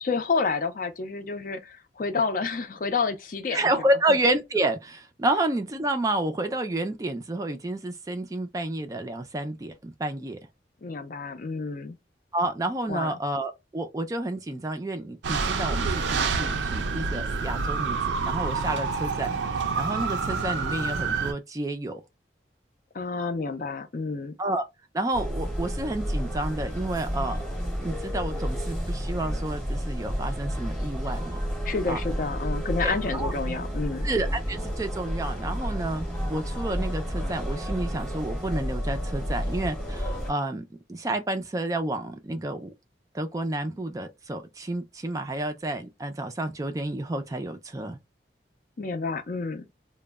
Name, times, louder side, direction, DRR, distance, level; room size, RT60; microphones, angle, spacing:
voice 1, 0.0-3.7 10.8-12.0 12.9-13.2 22.9-24.3 31.6-34.1 48.8-49.7, left 4 dB, 50° left, 0.4 m, -29 dB
voice 2, 3.5-10.4 12.3-19.3 19.7-22.0 24.4-24.7 24.9-27.4 27.8-31.4 31.9-32.0 32.8-33.3 34.0-42.7 43.1-48.0, right 1 dB, 20° right, 0.3 m, -30 dB
sound 1, 15.2-21.3, right 4 dB, 85° right, 0.4 m, -28 dB
sound 2, 25.1-40.3, equal, 5° left, 0.8 m, -31 dB
2.1 x 2.0 x 3.3 m
head